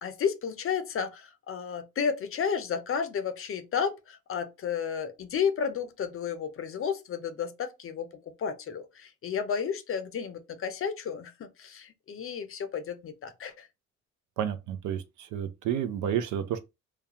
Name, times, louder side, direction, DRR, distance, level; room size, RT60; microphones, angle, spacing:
voice 1, 0.0-13.7, left 7 dB, 45° left, 0.5 m, -32 dB
voice 2, 14.4-16.6, right 9 dB, 75° right, 0.5 m, -31 dB
2.3 x 2.2 x 2.8 m
cardioid pair, 90°, 30 cm